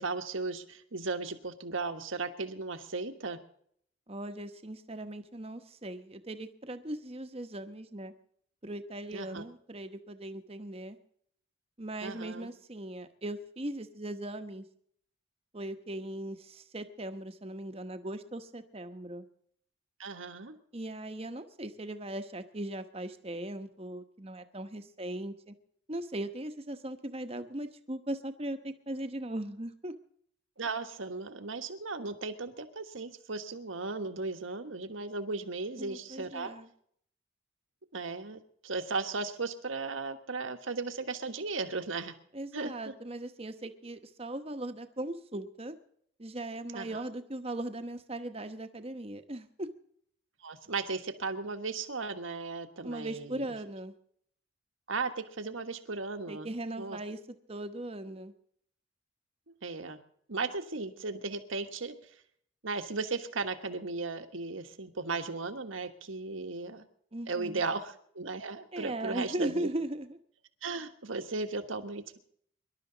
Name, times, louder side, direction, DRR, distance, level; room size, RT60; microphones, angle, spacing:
voice 1, 0.0-3.4 9.1-9.4 12.0-12.5 20.0-20.5 30.6-36.5 37.9-42.1 42.5-42.9 46.7-47.0 50.4-53.5 54.9-57.0 59.5-60.0 60.3-62.2 62.6-66.9 67.3-69.7 70.6-72.2, right 3 dB, 80° right, 7 dB, 1.4 m, -36 dB
voice 2, 4.1-8.1 8.6-11.0 11.8-14.6 15.5-19.3 20.7-25.5 25.9-29.9 35.8-36.7 42.3-45.7 46.2-49.7 52.8-53.9 56.3-57.2 57.5-58.3 67.1-67.6 68.7-70.2, right 1 dB, 30° right, 8 dB, 1.0 m, -39 dB
24.5 x 12.0 x 4.0 m, 0.65 s
head